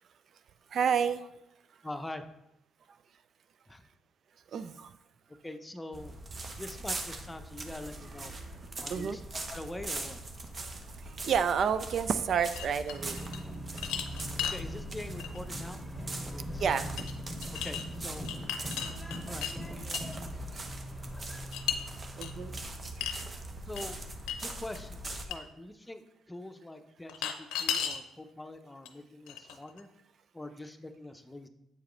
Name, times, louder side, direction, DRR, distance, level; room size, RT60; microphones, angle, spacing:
voice 1, 0.7-1.3 4.5-4.9 8.9-9.2 11.0-13.3 16.6-17.1 20.5-20.7 22.2-22.5, right 7 dB, 60° right, 12 dB, 0.3 m, -30 dB
voice 2, 1.8-2.3 3.7-3.8 5.4-6.2 6.6-8.3 8.8-9.2 9.5-10.2 14.4-16.6 17.6-18.3 19.2-19.5 23.7-24.0 24.4-29.9 30.3-31.5, left 1 dB, 15° left, 7 dB, 0.7 m, -44 dB
sound 1, 5.9-25.2, right 2 dB, 40° right, 0.9 m, -41 dB
sound 2, 12.6-13.4 13.8-14.6 15.2-15.4 17.0-17.1 17.4-17.8 18.2-19.5 19.9-20.2 21.5-21.8 22.2-22.3 23.0-23.3 23.8-23.9 24.3-24.4 24.8-24.9 25.3-25.4 27.1-28.0 28.9-29.0 29.3-29.8, left 9 dB, 90° left, 0.6 m, -34 dB
sound 3, 12.9-22.6, equal, 5° right, 2.3 m, -43 dB
7.9 x 4.8 x 3.2 m, 0.85 s
supercardioid pair, 65°, 0 cm